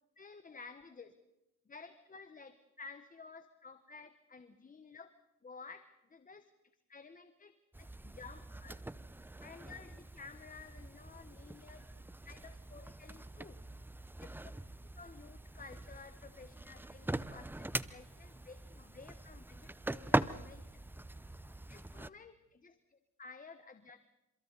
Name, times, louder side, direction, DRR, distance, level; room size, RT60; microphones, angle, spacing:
voice 1, 0.2-1.1 1.7-5.1 5.4-6.5 6.9-8.8 9.4-11.9 12.2-13.6 14.2-14.5 14.9-20.8 21.7-24.0, left 4 dB, 25° left, 10 dB, 1.3 m, -53 dB
sound 1, 7.7-22.1, right 1 dB, 5° right, 0.7 m, -42 dB
29.5 x 27.5 x 4.1 m, 0.97 s
cardioid pair, 90°, 30 cm